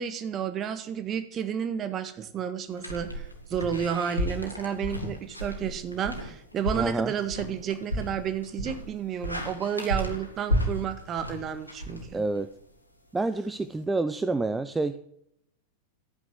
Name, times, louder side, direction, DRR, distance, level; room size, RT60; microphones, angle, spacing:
voice 1, 0.0-12.2, right 8 dB, 30° right, 10 dB, 1.6 m, -31 dB
sound 1, 2.8-12.6, equal, 85° left, 2.3 m, -33 dB
voice 2, 6.8-7.1 12.1-12.5 13.1-14.9, right 3 dB, 10° right, 12 dB, 0.7 m, -28 dB
13.5 x 9.4 x 7.8 m, 0.76 s
figure-of-eight pair, 90°, 0 cm